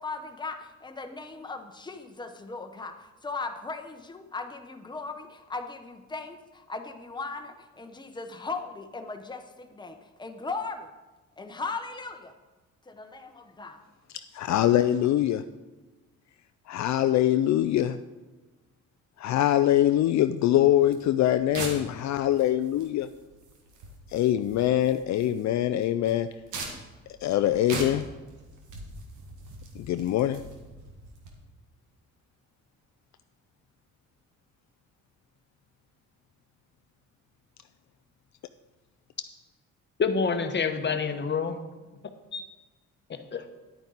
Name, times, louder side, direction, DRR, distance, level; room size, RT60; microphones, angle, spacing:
voice 1, 0.0-10.9 11.4-12.3 12.9-13.8, left 3 dB, 15° left, 5 dB, 0.9 m, -38 dB
voice 2, 14.1-15.4 16.7-18.0 19.2-23.1 24.1-26.3 27.2-28.0 29.9-30.4, left 12 dB, 65° left, 11 dB, 0.4 m, -23 dB
sound 1, 20.8-31.3, right 3 dB, 85° right, 1.8 m, -42 dB
voice 3, 40.0-41.6 42.3-42.4 43.1-43.4, left 5 dB, 35° left, 8 dB, 1.0 m, -27 dB
10.0 x 9.0 x 4.0 m, 1.2 s
cardioid pair, 90°, 30 cm